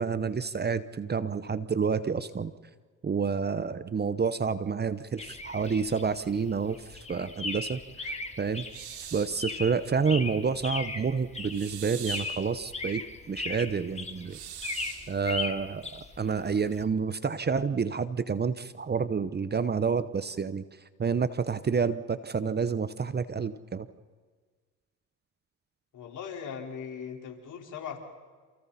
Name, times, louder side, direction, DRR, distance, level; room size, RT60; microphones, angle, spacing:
voice 1, 0.0-2.5 3.0-8.6 9.0-13.0 13.3-14.4 15.1-20.6 21.0-23.9, right 5 dB, 30° right, 14 dB, 1.0 m, -29 dB
sound 1, 5.2-16.8, left 3 dB, 20° left, 2.5 m, -38 dB
sound 2, 8.7-9.4 11.5-12.4 14.3-15.1, right 9 dB, 75° right, 4.7 m, -42 dB
voice 2, 25.9-28.0, left 7 dB, 55° left, 1 dB, 4.6 m, -39 dB
28.5 x 28.0 x 4.3 m, 1.5 s
supercardioid pair, 75°, 36 cm